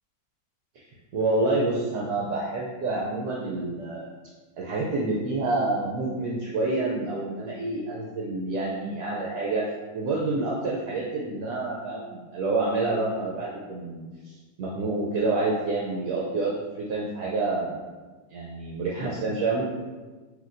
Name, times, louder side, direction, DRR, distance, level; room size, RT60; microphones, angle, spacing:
voice 1, 1.1-4.1 4.6-9.6 9.9-17.8 18.3-19.7, right 2 dB, 70° right, -3 dB, 1.0 m, -28 dB
5.9 x 2.9 x 2.5 m, 1.3 s
omnidirectional pair, 2.0 m